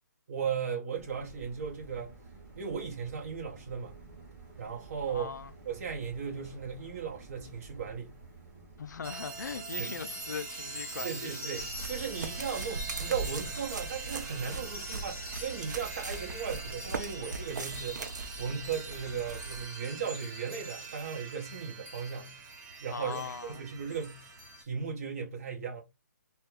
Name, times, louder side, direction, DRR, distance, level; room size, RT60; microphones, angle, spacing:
voice 1, 0.3-2.2 2.6-4.0 4.6-5.3 5.6-8.2 9.8-9.9 11.0-18.0 18.4-22.4 22.8-24.3 24.6-25.8, right 6 dB, 50° right, 1.0 m, -36 dB
sound 1, 1.0-10.5, right 3 dB, 15° right, 1.2 m, -52 dB
voice 2, 5.1-5.5 8.8-11.4 22.9-23.6, left 6 dB, 75° left, 0.4 m, -40 dB
sound 2, 9.0-24.6, right 3 dB, 35° right, 1.6 m, -42 dB
sound 3, 11.6-19.6, right 3 dB, 75° right, 0.7 m, -40 dB
2.8 x 2.2 x 3.6 m
hypercardioid pair, 155°, 10 cm